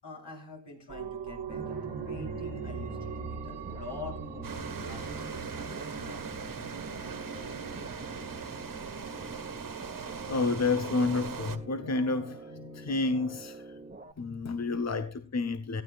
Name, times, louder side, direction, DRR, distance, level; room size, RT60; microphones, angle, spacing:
voice 1, 0.0-7.5, left 4 dB, 75° left, 7.8 m, -47 dB
sound 1, 0.9-10.2 10.6-10.7, right 5 dB, 75° right, 1.5 m, -41 dB
sound 2, 1.5-14.1, right 3 dB, 20° right, 1.3 m, -47 dB
sound 3, 4.4-11.6, right 5 dB, 50° right, 1.6 m, -40 dB
voice 2, 10.0-13.8 14.2-15.8, left 3 dB, 40° left, 1.0 m, -30 dB
18.5 x 14.5 x 2.4 m
cardioid pair, 70°, 41 cm